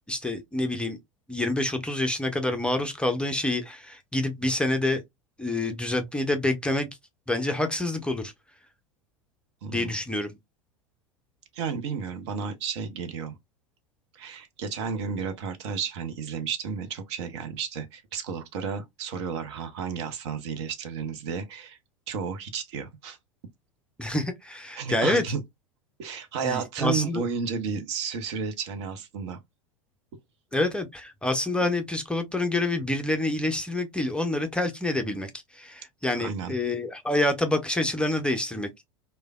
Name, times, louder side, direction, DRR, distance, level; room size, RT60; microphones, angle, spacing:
voice 1, 0.1-1.0 1.3-5.0 5.4-6.9 7.3-8.3 9.7-10.3 24.0-25.2 26.4-27.2 30.5-38.7, left 2 dB, 5° left, 0.5 m, -27 dB
voice 2, 9.6-10.0 11.5-13.4 14.1-21.8 22.1-23.2 24.8-25.4 26.0-29.4 36.1-36.5, right 6 dB, 60° right, 0.7 m, -32 dB
3.1 x 2.1 x 2.2 m
figure-of-eight pair, 85°, 17 cm